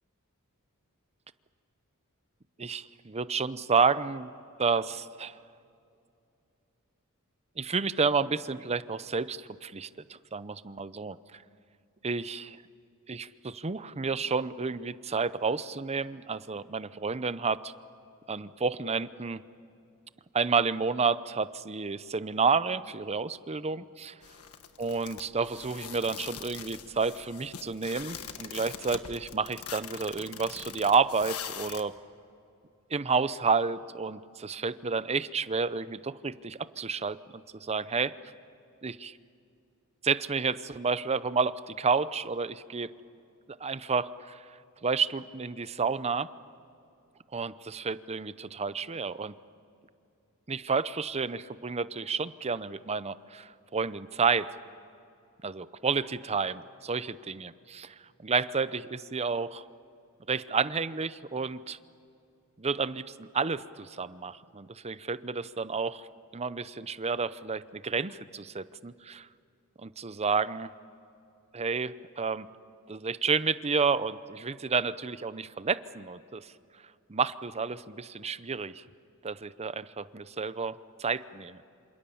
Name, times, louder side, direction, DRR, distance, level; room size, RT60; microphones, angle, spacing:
voice 1, 2.6-4.3 4.6-5.3 7.6-9.9 10.3-11.4 12.0-12.6 13.1-17.7 18.3-19.4 20.3-24.1 24.8-31.9 32.9-38.1 38.8-39.2 40.0-42.9 43.6-44.4 44.8-46.3 47.3-49.3 50.5-54.5 55.4-57.9 58.2-59.7 60.3-61.8 62.6-66.1 66.3-69.3 69.8-70.7 71.5-72.5 72.9-76.5 77.1-78.8 79.2-81.6, right 5 dB, 30° right, 15 dB, 0.7 m, -30 dB
sound 1, 24.2-31.8, left 8 dB, 80° left, 1.5 m, -42 dB
27.5 x 27.5 x 7.1 m, 2.5 s
head